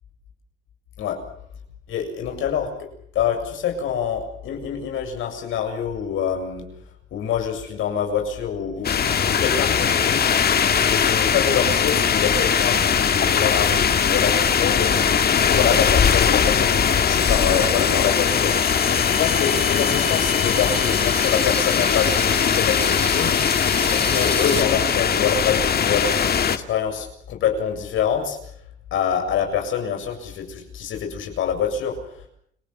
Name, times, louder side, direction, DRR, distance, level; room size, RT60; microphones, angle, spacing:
voice 1, 1.9-2.7 3.1-6.7 7.1-10.2 10.9-14.9 15.3-23.4 23.9-28.4 28.9-32.0, left 7 dB, 85° left, 4 dB, 7.4 m, -26 dB
sound 1, 8.8-26.6, left 7 dB, 50° left, 2.1 m, -20 dB
sound 2, 17.2-24.6, left 4 dB, 30° left, 5.8 m, -29 dB
30.0 x 19.0 x 8.0 m, 0.67 s
cardioid pair, 90°, 20 cm